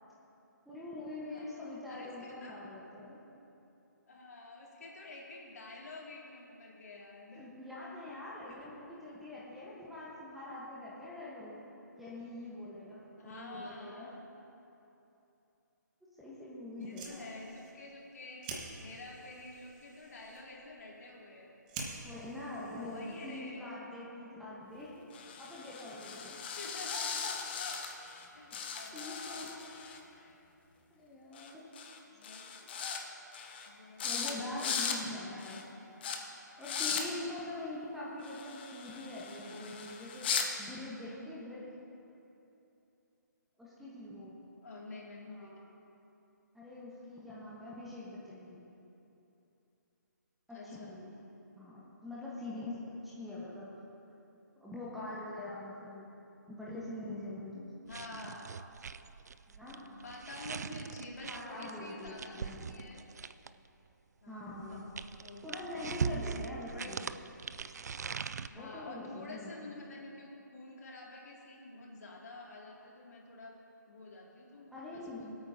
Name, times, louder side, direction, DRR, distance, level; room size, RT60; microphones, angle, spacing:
voice 1, 0.6-3.2 7.3-11.6 12.0-14.1 16.2-17.4 22.0-24.9 25.4-26.4 28.5-28.6 28.9-29.5 30.9-31.7 34.0-35.6 36.6-40.3 40.6-41.6 43.6-44.4 45.4-45.6 46.5-48.6 50.5-51.1 51.6-53.7 54.6-56.0 56.5-57.7 59.5-59.8 61.3-62.7 64.3-64.8 65.4-67.1 68.5-69.7 74.7-75.4, left 2 dB, ahead, -8 dB, 1.2 m, -44 dB
voice 2, 1.2-2.5 4.1-7.5 8.5-8.6 13.2-14.3 16.8-21.5 22.8-24.0 26.5-27.2 28.3-29.2 30.2-30.4 32.1-32.7 33.7-34.8 35.2-35.8 44.6-45.5 50.5-50.9 57.9-58.6 59.7-63.0 64.2-64.8 65.2-65.5 66.7-66.9 68.5-73.6 73.8-75.3, left 2 dB, 55° left, -2 dB, 2.4 m, -49 dB
Fire, 16.7-23.7, right 3 dB, 25° right, 1.3 m, -49 dB
sound 1, 25.1-28.2 28.5-30.0 31.3-31.5 31.7-32.0 32.2-33.0 33.3-33.7 34.0-34.3 34.6-35.0 35.4-35.6 36.0-36.2 36.6-37.0 38.2-40.5, left 6 dB, 35° left, 0.9 m, -38 dB
sound 2, 57.9-63.7 64.5-68.5, right 6 dB, 60° right, 0.4 m, -41 dB
22.0 x 8.6 x 2.8 m, 2.9 s
figure-of-eight pair, 150°, 10 cm